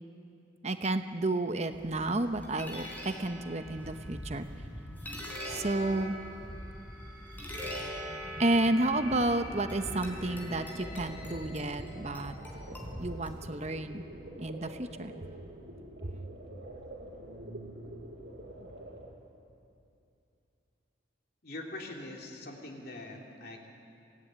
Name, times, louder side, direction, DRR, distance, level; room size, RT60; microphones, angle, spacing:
voice 1, 0.6-4.5 5.5-6.2 8.4-12.3 13.0-14.0 14.4-15.1 16.0-16.2, right 2 dB, 35° right, 8 dB, 0.9 m, -31 dB
sound 1, 1.7-13.8, equal, 10° left, 4.1 m, -43 dB
sound 2, 5.5-12.6, equal, 20° right, 7.4 m, -47 dB
sound 3, 10.8-19.1, right 1 dB, 70° right, 5.4 m, -47 dB
voice 2, 21.4-23.7, left 2 dB, 55° left, 0 dB, 3.2 m, -43 dB
24.5 x 17.5 x 9.8 m, 2.7 s
head